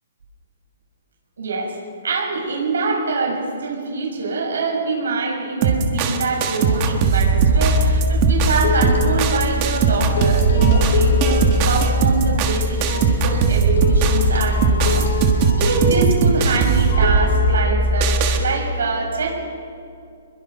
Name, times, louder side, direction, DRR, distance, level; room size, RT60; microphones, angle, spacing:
voice 1, 1.4-1.7 2.0-19.4, right 3 dB, 85° right, -1 dB, 6.4 m, -24 dB
sound 1, 5.6-18.4, right 3 dB, 20° right, 1.4 m, -18 dB
sound 2, 7.3-7.8 8.6-9.5 9.9-17.6, left 6 dB, 60° left, 4.0 m, -28 dB
26.0 x 22.0 x 5.9 m, 2.4 s
hypercardioid pair, 180°, 0 cm